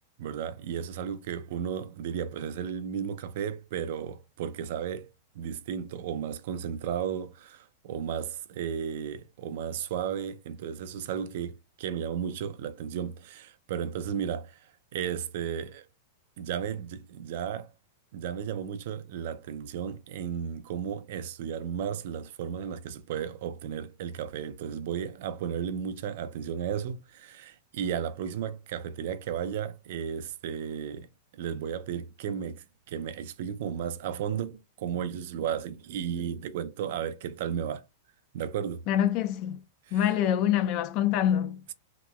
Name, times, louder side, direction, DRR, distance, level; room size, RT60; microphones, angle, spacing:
voice 1, 0.2-15.9 16.4-17.7 18.1-31.1 31.3-37.8 38.3-38.8 39.9-40.1, right 8 dB, 55° right, 0.4 m, -34 dB
voice 2, 38.9-39.6 39.9-41.6, left 10 dB, 35° left, 0.3 m, -25 dB
2.9 x 2.9 x 2.2 m
supercardioid pair, 155°, 0 cm